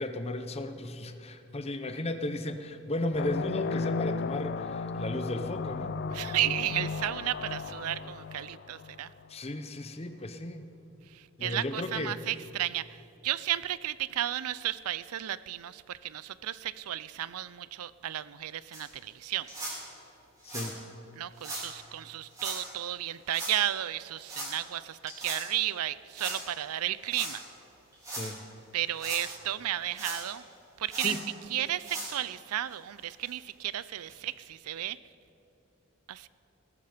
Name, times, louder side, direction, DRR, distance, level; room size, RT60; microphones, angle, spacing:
voice 1, 0.0-6.0 9.3-10.6 11.4-12.2 20.4-20.8 28.2-28.4 31.0-31.2, left 1 dB, 25° left, 9 dB, 0.7 m, -35 dB
sound 1, 3.1-9.3, left 4 dB, 45° left, 0.3 m, -34 dB
voice 2, 6.1-9.1 11.1-13.0 13.2-19.5 21.2-27.4 28.7-30.4 30.8-31.2 31.5-35.0 36.1-36.3, right 12 dB, 80° right, 18 dB, 0.4 m, -33 dB
sound 2, 18.7-18.8 19.5-19.8 20.4-20.7 21.4-21.6 22.3-22.6 23.3-23.6 24.3-24.5 25.1-25.4 26.1-26.4 27.1-27.3 27.9-28.3 28.8-29.3 29.9-30.4 30.9-31.2 31.8-32.1 32.7-32.8 33.2-33.3 34.1-34.2, right 1 dB, 15° right, 4.3 m, -38 dB
19.5 x 13.0 x 5.1 m, 2.7 s
head